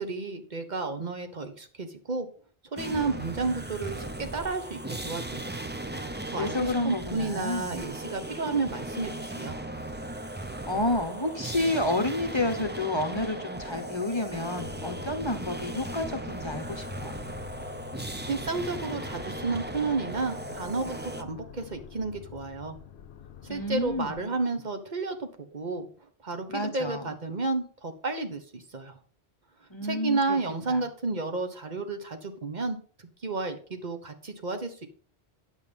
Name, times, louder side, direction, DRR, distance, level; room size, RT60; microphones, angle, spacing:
voice 1, 0.0-2.3 2.7-5.5 6.3-9.6 18.3-22.8 23.5-25.9 26.2-28.9 29.8-32.8 33.2-34.9, right 3 dB, 45° right, 7 dB, 1.4 m, -32 dB
sound 1, 2.8-21.2, right 1 dB, 10° right, 0.6 m, -37 dB
voice 2, 6.3-7.8 10.2-17.2 23.5-24.3 26.5-27.1 29.7-30.4 30.7-30.8, left 2 dB, 25° left, 6 dB, 1.0 m, -30 dB
sound 2, 14.6-24.3, left 9 dB, 75° left, 0.9 m, -46 dB
9.1 x 7.5 x 5.3 m, 0.43 s
omnidirectional pair, 1.1 m